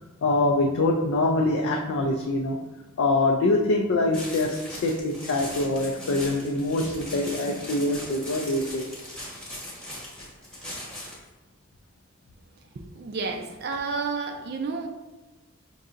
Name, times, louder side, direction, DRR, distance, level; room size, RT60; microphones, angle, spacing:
voice 1, 0.2-2.6 3.0-8.9, left 2 dB, 75° left, 1 dB, 0.4 m, -24 dB
sound 1, 4.1-11.3, left 1 dB, 5° left, 1.0 m, -39 dB
voice 2, 13.0-14.9, right 4 dB, 50° right, 4 dB, 0.3 m, -30 dB
5.3 x 2.7 x 2.4 m, 1.2 s
head